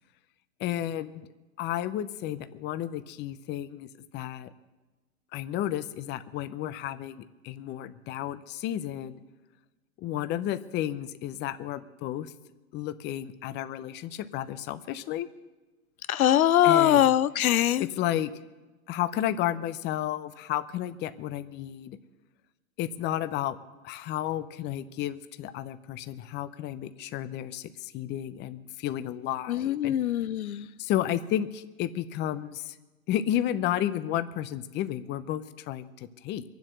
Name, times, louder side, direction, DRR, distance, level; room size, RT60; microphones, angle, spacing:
voice 1, 0.6-1.2 1.6-3.9 4.1-4.5 5.3-9.2 10.0-12.3 12.7-15.3 16.6-17.1 17.8-18.3 18.9-22.0 22.8-23.6 23.8-30.0 30.8-32.8 33.1-36.4, left 12 dB, 25° left, 12 dB, 0.7 m, -32 dB
voice 2, 16.1-17.9 29.5-30.7, left 12 dB, 80° left, 16 dB, 0.7 m, -22 dB
23.5 x 7.8 x 6.6 m, 1.2 s
hypercardioid pair, 115°, 42 cm